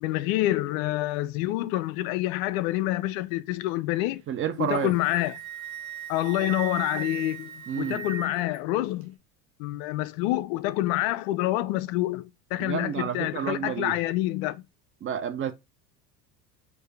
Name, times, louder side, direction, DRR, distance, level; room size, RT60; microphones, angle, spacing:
voice 1, 0.0-4.2 4.6-5.4 6.1-9.1 9.6-14.6, left 16 dB, 60° left, 0.5 m, -27 dB
voice 2, 4.3-4.9 7.7-8.1 12.6-13.9 15.0-15.5, right 8 dB, 25° right, 0.4 m, -30 dB
Wind instrument woodwind instrument, 4.6-8.6, right 10 dB, 70° right, 1.3 m, -38 dB
4.6 x 2.6 x 3.2 m
hypercardioid pair, 80°, 49 cm